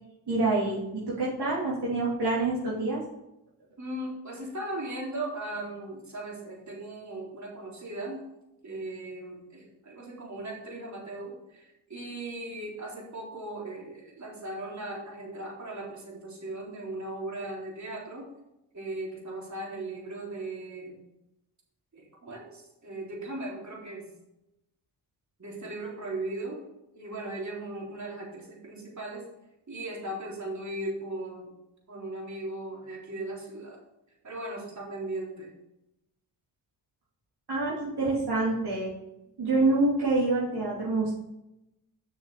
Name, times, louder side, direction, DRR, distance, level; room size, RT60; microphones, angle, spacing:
voice 1, 0.3-3.0 37.5-38.9 39.4-41.1, right 2 dB, 60° right, -7 dB, 3.2 m, -26 dB
voice 2, 3.8-8.2 8.6-18.3 18.7-21.0 21.9-24.1 25.4-26.6 26.9-29.3 29.7-31.5 31.9-33.8 34.2-35.5, right 2 dB, 40° right, -3 dB, 4.1 m, -38 dB
7.9 x 6.1 x 6.8 m, 0.90 s
supercardioid pair, 60°, 45 cm